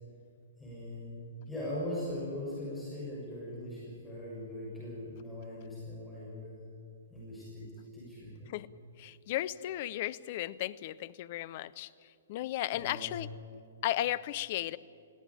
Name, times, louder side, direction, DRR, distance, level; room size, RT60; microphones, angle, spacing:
voice 1, 0.6-6.6 7.1-7.6 7.9-8.5 12.7-13.2, left 1 dB, 5° left, -7 dB, 6.7 m, -40 dB
voice 2, 9.0-11.9 12.3-13.3 13.8-14.8, left 14 dB, 40° left, 18 dB, 0.6 m, -35 dB
20.0 x 16.5 x 10.0 m, 2.4 s
figure-of-eight pair, 115°, 0 cm